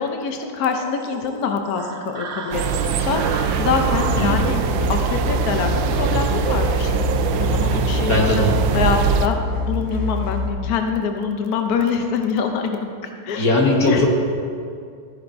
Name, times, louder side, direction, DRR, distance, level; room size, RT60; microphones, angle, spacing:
voice 1, 0.0-9.4 9.7-12.9 13.2-13.5 13.8-14.1, left 6 dB, 75° left, 4 dB, 0.8 m, -25 dB
sound 1, 0.6-8.7, right 4 dB, 60° right, 0.7 m, -37 dB
sound 2, 2.5-9.3, right 7 dB, 75° right, 1.1 m, -22 dB
sound 3, 3.5-10.5, left 3 dB, 10° left, 1.1 m, -26 dB
voice 2, 8.0-8.5 13.4-14.1, left 1 dB, 45° left, -1 dB, 1.8 m, -18 dB
13.5 x 10.5 x 2.6 m, 2.3 s
omnidirectional pair, 2.4 m